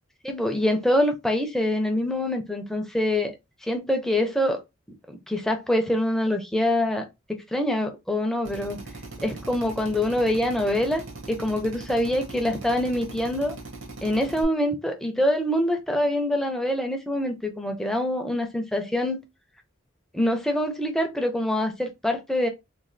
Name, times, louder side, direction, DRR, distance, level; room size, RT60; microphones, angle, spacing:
voice 1, 0.2-4.6 5.1-8.8 9.2-13.6 14.0-19.2 20.1-22.5, left 1 dB, ahead, 0.4 m, -25 dB
Drill, 8.4-14.4, right 2 dB, 70° right, 0.9 m, -40 dB
3.2 x 2.2 x 2.5 m
head